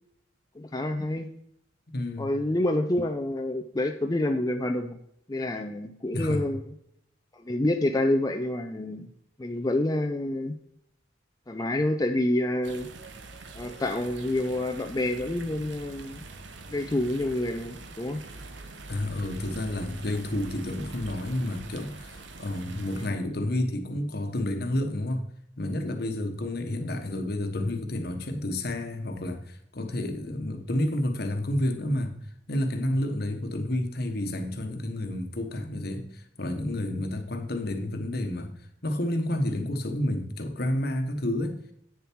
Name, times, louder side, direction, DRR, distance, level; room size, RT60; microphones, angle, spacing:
voice 1, 0.6-1.3 2.2-5.0 5.3-6.6 7.3-9.1 9.4-10.6 11.5-12.9 13.5-16.2 16.7-18.2 23.0-23.1, left 1 dB, 20° left, 0.5 m, -28 dB
voice 2, 1.9-2.3 6.1-6.4 18.9-25.2 25.6-32.1 32.5-38.5 38.8-41.6, left 1 dB, 55° left, 1.2 m, -30 dB
sound 1, 12.6-23.1, right 3 dB, 70° right, 1.0 m, -44 dB
8.8 x 6.9 x 4.6 m
head